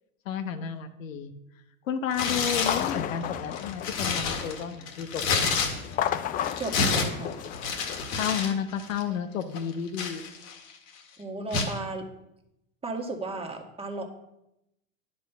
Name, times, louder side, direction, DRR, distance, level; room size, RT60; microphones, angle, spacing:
voice 1, 0.2-1.3 1.9-5.6 8.2-10.2, left 7 dB, 75° left, 9 dB, 1.0 m, -32 dB
Tearing, 2.1-2.9 3.4-6.1 6.4-8.5 8.8-9.0 9.5-10.7 11.5-11.8, left 5 dB, 50° left, 1.8 m, -29 dB
sound 1, 2.5-4.8 5.8-8.3, left 10 dB, 25° left, 0.3 m, -33 dB
voice 2, 6.6-7.3 11.2-12.1 12.8-14.1, right 2 dB, 15° right, 1 dB, 1.8 m, -34 dB
10.0 x 5.3 x 6.8 m, 0.86 s
hypercardioid pair, 90°, 40 cm